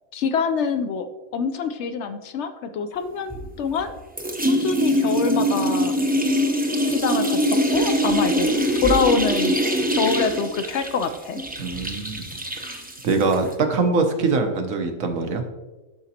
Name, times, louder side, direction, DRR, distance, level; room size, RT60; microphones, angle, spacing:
voice 1, 0.1-1.1 1.3-3.9 4.4-5.9 6.9-7.4 7.7-9.6 9.9-11.4, left 5 dB, 65° left, 9 dB, 0.8 m, -25 dB
sound 1, 3.3-13.5, equal, 10° right, 0.5 m, -23 dB
voice 2, 11.6-12.4 13.0-15.4, right 4 dB, 80° right, 5 dB, 1.3 m, -23 dB
11.5 x 5.0 x 2.8 m, 1.2 s
omnidirectional pair, 1.4 m